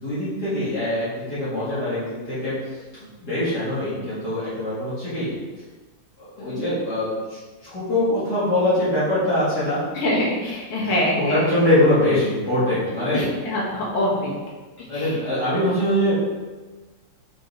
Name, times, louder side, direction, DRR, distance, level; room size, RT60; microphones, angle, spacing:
voice 1, 0.0-2.5 3.2-5.3 6.2-9.8 10.8-13.2 14.9-16.1, left 1 dB, 50° left, -12 dB, 2.5 m, -23 dB
voice 2, 10.0-11.5 13.1-14.3 14.9-15.1, left 1 dB, 90° left, -5 dB, 2.5 m, -24 dB
5.5 x 5.4 x 4.6 m, 1.3 s
omnidirectional pair, 2.4 m